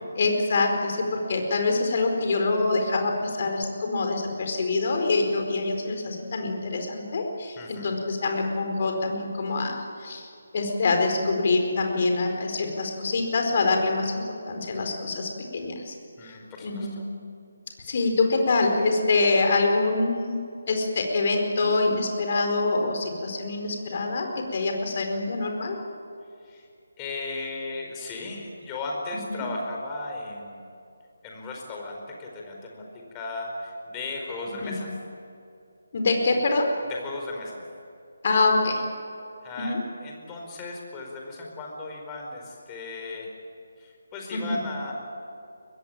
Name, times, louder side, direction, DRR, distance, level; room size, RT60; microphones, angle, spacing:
voice 1, 0.2-10.3 10.5-15.9 16.2-17.0 17.8-20.4 20.7-25.8 29.3-29.4 34.6-34.8 35.9-36.7 38.2-38.8 39.6-39.8 44.3-44.6, left 3 dB, 40° left, 3 dB, 4.6 m, -25 dB
voice 2, 7.6-7.9 16.2-16.9 26.4-26.7 27.0-30.6 31.2-34.9 36.9-37.6 39.4-39.7 40.0-43.3 43.8-44.9, left 2 dB, 15° left, 0 dB, 4.8 m, -36 dB
23.5 x 21.0 x 9.1 m, 2.5 s
figure-of-eight pair, 150°, 0 cm